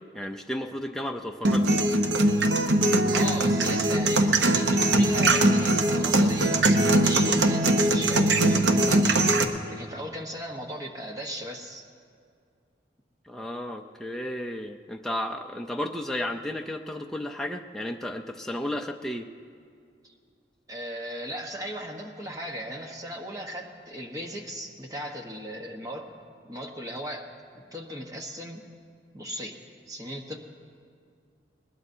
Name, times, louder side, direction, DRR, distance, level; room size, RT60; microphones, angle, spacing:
voice 1, 0.1-1.8 13.3-19.3, left 1 dB, ahead, 2 dB, 0.4 m, -33 dB
sound 1, 1.4-9.4, right 1 dB, 85° right, 0.9 m, -21 dB
voice 2, 3.1-9.1 9.7-11.8 20.0-20.1 20.7-26.1 26.4-27.3 27.7-28.7 29.1-29.6 29.9-30.4, equal, 20° right, 2 dB, 1.1 m, -37 dB
21.0 x 20.5 x 2.7 m, 2.2 s
head